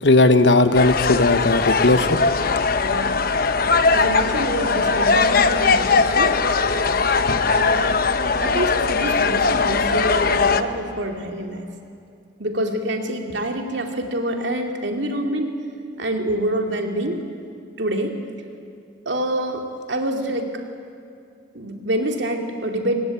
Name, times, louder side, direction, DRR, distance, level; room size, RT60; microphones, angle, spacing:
voice 1, 0.0-2.2, left 2 dB, 70° left, 10 dB, 1.2 m, -16 dB
sound 1, 0.7-10.6, left 4 dB, 50° left, 0.9 m, -19 dB
voice 2, 2.8-3.5 3.9-6.3 7.5-8.0 8.4-11.7 12.4-15.5 16.0-17.2 17.8-18.2 19.1-20.5 21.5-23.0, right 1 dB, 75° right, 3 dB, 2.6 m, -26 dB
24.5 x 20.0 x 9.0 m, 2.4 s
head